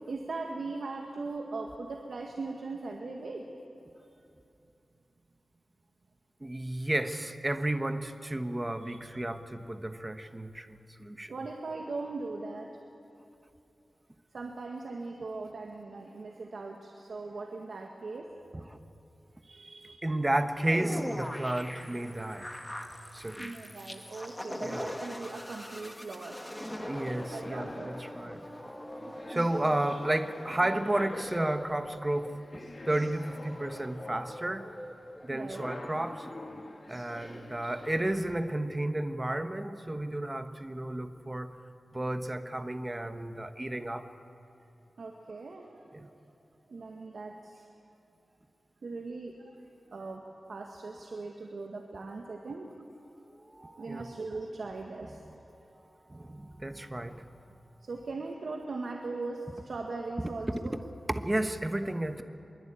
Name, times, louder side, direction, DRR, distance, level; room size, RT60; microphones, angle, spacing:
voice 1, 0.1-3.5 8.8-9.2 11.3-12.7 14.3-18.3 19.3-20.1 23.4-26.4 27.3-28.2 29.1-29.5 35.3-35.7 36.7-36.8 43.6-43.8 45.0-46.1 46.7-47.7 48.8-49.5 49.9-52.8 53.6-55.2 57.8-60.7, right 3 dB, 75° right, 2 dB, 1.9 m, -40 dB
voice 2, 6.4-11.3 18.5-18.8 20.0-22.5 23.1-23.5 24.6-24.9 26.9-28.5 29.3-34.7 35.2-36.3 36.9-41.6 41.9-44.1 45.9-46.1 53.1-54.1 55.2-55.3 56.1-57.2 61.1-62.2, right 1 dB, 20° right, 8 dB, 1.3 m, -32 dB
sound 1, 20.6-38.4, equal, 10° left, 1.8 m, -43 dB
sound 2, 26.1-38.3, left 2 dB, 40° left, 3.4 m, -46 dB
24.0 x 23.0 x 8.9 m, 2.7 s
wide cardioid pair, 85°, 0 cm